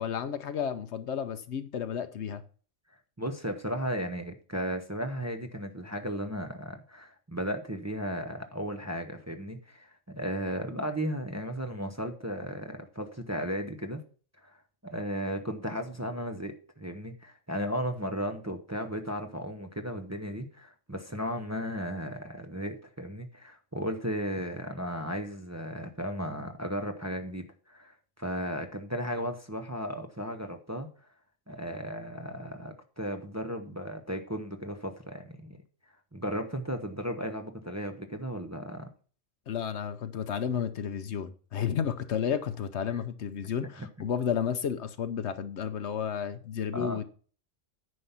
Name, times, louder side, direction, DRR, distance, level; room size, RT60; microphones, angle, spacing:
voice 1, 0.0-2.4 39.5-47.0, left 8 dB, 65° left, 10 dB, 1.0 m, -32 dB
voice 2, 3.2-9.9 10.2-14.0 14.4-14.6 14.8-30.9 31.5-35.6 36.1-38.9 42.9-43.0 43.8-43.9 46.7-47.0, equal, 15° right, 5 dB, 0.8 m, -35 dB
9.6 x 5.6 x 5.6 m, 0.41 s
omnidirectional pair, 1.3 m